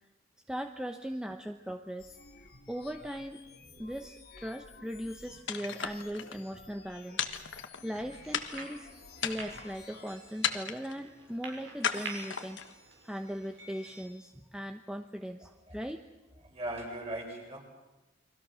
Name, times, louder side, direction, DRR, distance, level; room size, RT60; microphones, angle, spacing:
voice 1, 0.5-2.2 2.7-3.4 3.8-7.2 7.8-8.9 9.2-12.6 13.0-16.0, equal, 5° right, 5 dB, 0.9 m, -39 dB
sound 1, 2.0-10.1, left 4 dB, 55° left, 2.2 m, -53 dB
sound 2, 5.5-6.4 7.2-8.0 8.3-8.8 9.2-9.7 10.4-11.0 11.8-12.7, left 8 dB, 75° left, 1.4 m, -35 dB
sound 3, 8.0-14.1, right 3 dB, 85° right, 6.7 m, -48 dB
voice 2, 16.4-17.6, right 1 dB, 35° right, 0 dB, 6.9 m, -38 dB
30.0 x 23.0 x 6.4 m, 1.1 s
head